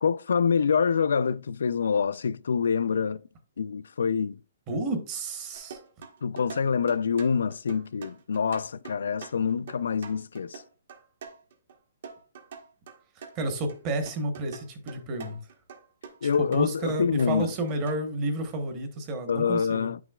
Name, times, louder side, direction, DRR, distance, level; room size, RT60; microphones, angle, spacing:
voice 1, 0.0-3.2 3.6-4.4 6.2-10.6 16.2-17.5 19.3-20.0, left 6 dB, 80° left, 0.3 m, -26 dB
voice 2, 4.7-5.8 13.3-15.4 16.2-19.9, right 2 dB, 20° right, 0.9 m, -31 dB
sound 1, 5.5-11.8 12.0-13.8 14.1-18.0, right 5 dB, 45° right, 1.0 m, -45 dB
9.1 x 6.0 x 2.3 m
hypercardioid pair, 175°, 0 cm